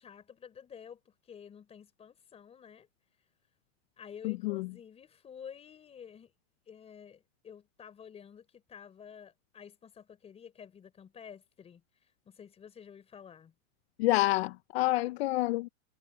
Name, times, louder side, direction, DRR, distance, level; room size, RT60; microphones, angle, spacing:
voice 1, 0.0-2.9 4.0-6.3 6.7-11.8 12.3-13.5, left 7 dB, 15° left, 4.2 m, -50 dB
voice 2, 4.2-4.7 14.0-15.7, left 18 dB, 50° left, 1.1 m, -28 dB
supercardioid pair, 165°, 40 cm